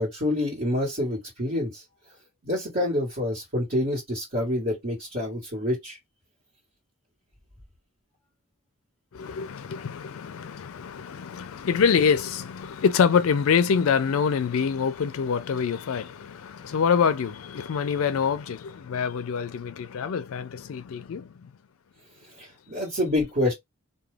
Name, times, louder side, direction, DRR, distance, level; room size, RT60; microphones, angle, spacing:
voice 1, 0.0-1.8 2.4-6.0 22.4-23.5, left 1 dB, 45° right, 1.2 m, -27 dB
voice 2, 9.1-21.5, left 6 dB, 65° left, 0.4 m, -25 dB
2.4 x 2.2 x 3.2 m
head